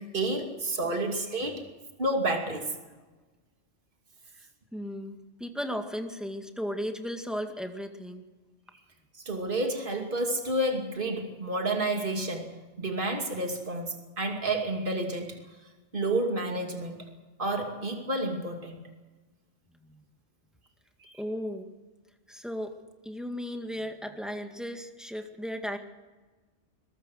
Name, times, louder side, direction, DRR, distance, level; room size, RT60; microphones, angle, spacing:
voice 1, 0.0-1.6 2.0-2.7 9.3-12.5 12.8-15.4 15.9-17.1 17.4-18.8 21.0-21.1, right 2 dB, 50° right, 3 dB, 2.8 m, -30 dB
voice 2, 4.7-5.1 5.4-8.2 19.8-20.0 21.2-21.7 22.3-22.8 23.0-25.8, equal, ahead, 4 dB, 2.0 m, -35 dB
22.0 x 21.5 x 6.4 m, 1.3 s
omnidirectional pair, 1.2 m